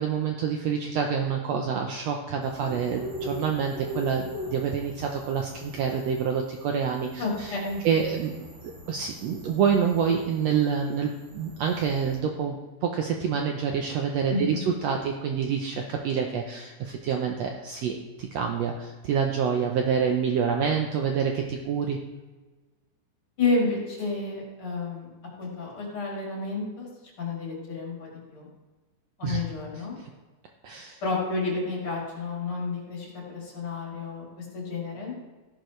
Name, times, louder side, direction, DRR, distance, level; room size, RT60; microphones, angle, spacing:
voice 1, 0.0-7.5 7.8-22.0 29.2-29.4 30.0-30.1 30.6-31.0, right 7 dB, 70° right, 2 dB, 1.7 m, -27 dB
sound 1, 2.4-12.2, equal, 25° right, 2.9 m, -42 dB
voice 2, 7.2-7.8 14.3-14.6 23.4-25.1 25.4-26.9 27.2-28.5 29.2-29.9 31.0-35.1, left 3 dB, 40° left, -3 dB, 3.8 m, -30 dB
14.5 x 11.0 x 3.2 m, 1.2 s
omnidirectional pair, 3.6 m